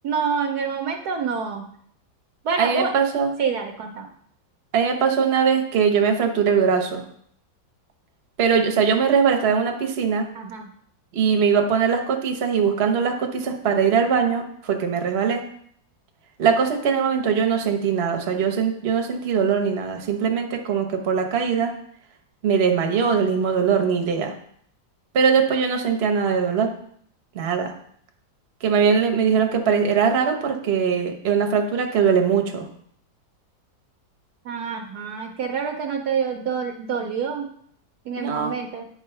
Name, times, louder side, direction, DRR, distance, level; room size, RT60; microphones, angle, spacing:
voice 1, 0.0-1.6 2.4-2.9 3.4-4.1 10.3-10.7 34.4-37.5 38.1-38.8, right 6 dB, 65° right, 4 dB, 1.1 m, -27 dB
voice 2, 2.6-3.3 4.7-7.0 8.4-10.2 11.1-15.4 16.4-21.7 22.4-24.3 25.1-26.7 27.3-27.7 28.6-32.7 38.2-38.5, right 6 dB, 45° right, 4 dB, 0.9 m, -21 dB
9.6 x 3.8 x 5.5 m, 0.65 s
omnidirectional pair, 2.0 m